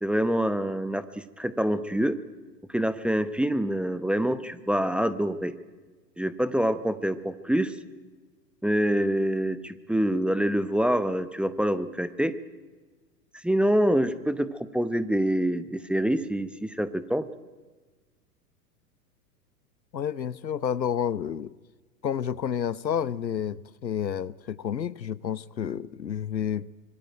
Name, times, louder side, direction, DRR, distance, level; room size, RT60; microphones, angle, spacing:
voice 1, 0.0-2.2 2.7-5.5 6.2-7.7 8.6-12.3 13.4-17.3, equal, ahead, 0.8 m, -26 dB
voice 2, 19.9-21.5 22.0-26.7, left 8 dB, 85° left, 1.0 m, -30 dB
25.0 x 24.0 x 9.0 m
figure-of-eight pair, 105°, 50 cm